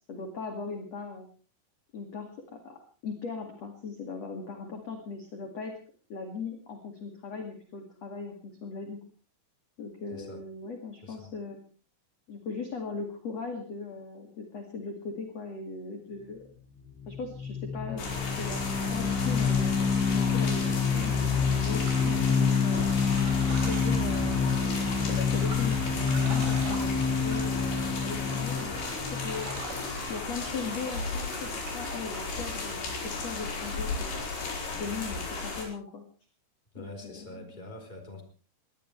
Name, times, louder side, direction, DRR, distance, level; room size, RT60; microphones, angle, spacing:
voice 1, 0.1-1.3 1.9-5.7 6.1-9.0 9.8-11.6 12.3-16.4 17.1-18.0 18.4-19.7 20.1-22.8 23.7-24.7 25.1-29.6 30.1-34.2 34.8-36.0 36.8-37.3, left 4 dB, 45° left, 3 dB, 2.7 m, -39 dB
voice 2, 10.1-10.4 11.0-11.3 34.7-35.1 36.7-38.2, left 2 dB, 10° left, 4 dB, 3.5 m, -45 dB
sound 1, 16.9-30.1, left 5 dB, 85° left, 6.8 m, -28 dB
sound 2, 18.0-35.7, left 3 dB, 65° left, 7.0 m, -35 dB
sound 3, 21.8-24.8 25.2-28.3 28.6-30.3 30.8-32.7, right 3 dB, 80° right, 7.2 m, -44 dB
22.5 x 19.5 x 3.3 m, 0.39 s
omnidirectional pair, 5.4 m